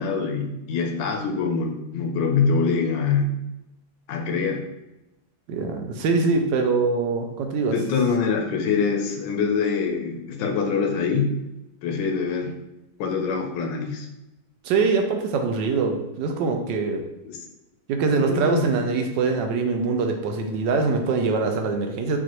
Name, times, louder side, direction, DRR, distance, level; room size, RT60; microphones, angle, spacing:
voice 1, 0.0-3.4 4.1-4.7 7.7-11.4 11.8-12.5 13.0-14.1 17.2-17.4 18.1-18.6, left 5 dB, 85° left, 3 dB, 1.3 m, -24 dB
voice 2, 5.5-7.8 14.6-17.0 17.9-22.2, right 4 dB, 85° right, 4 dB, 1.3 m, -23 dB
5.7 x 2.5 x 2.9 m, 0.94 s
omnidirectional pair, 1.9 m